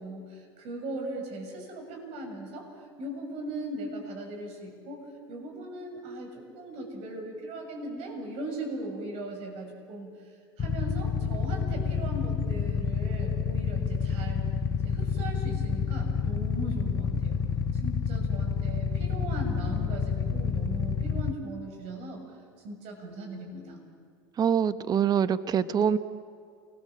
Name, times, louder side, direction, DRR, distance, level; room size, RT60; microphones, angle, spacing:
voice 1, 0.0-10.1 10.6-14.5 14.8-17.4 17.7-22.2 22.6-23.8, right 1 dB, 55° right, 3 dB, 7.3 m, -38 dB
Motorcycle / Idling, 10.6-21.3, left 6 dB, 25° left, 1.1 m, -29 dB
voice 2, 24.4-26.0, right 8 dB, 30° right, 12 dB, 1.1 m, -24 dB
28.0 x 21.5 x 7.6 m, 2.2 s
hypercardioid pair, 95°, 13 cm